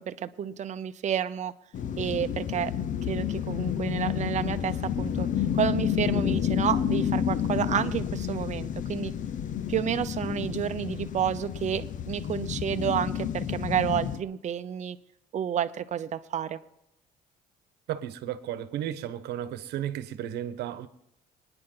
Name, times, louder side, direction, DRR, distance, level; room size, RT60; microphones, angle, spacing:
voice 1, 0.0-1.5 2.0-2.7 3.1-5.3 5.5-9.1 9.7-15.0 15.3-16.6, right 9 dB, 45° right, 0.8 m, -30 dB
sound 1, 1.7-14.2, left 9 dB, 50° left, 0.8 m, -30 dB
voice 2, 17.9-20.9, right 11 dB, 80° right, 1.1 m, -34 dB
24.5 x 9.9 x 3.9 m
cardioid pair, 110°, 17 cm